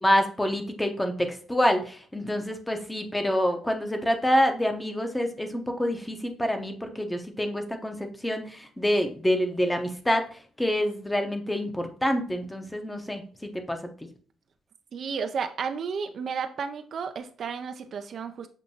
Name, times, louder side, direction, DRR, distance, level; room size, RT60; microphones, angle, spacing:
voice 1, 0.0-13.8, equal, 10° left, 5 dB, 0.7 m, -27 dB
voice 2, 14.9-18.5, right 6 dB, 55° right, 8 dB, 0.4 m, -32 dB
7.0 x 2.6 x 2.8 m, 0.44 s
cardioid pair, 90°, 0 cm